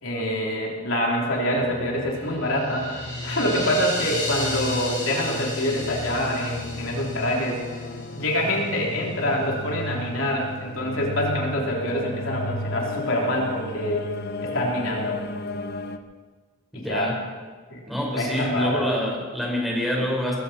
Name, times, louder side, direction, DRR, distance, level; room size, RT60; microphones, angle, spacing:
voice 1, 0.0-7.6 8.1-14.0 14.4-15.2 16.7-17.1 17.7-17.8 18.1-18.9, equal, 80° left, -2 dB, 3.2 m, -26 dB
sound 1, 1.5-16.0, left 2 dB, 55° left, 0.9 m, -34 dB
sound 2, 2.2-8.4, left 2 dB, 20° left, 6.6 m, -34 dB
voice 2, 16.7-17.2 17.9-20.4, left 1 dB, ahead, -2 dB, 4.4 m, -26 dB
21.0 x 15.0 x 4.3 m, 1.5 s
head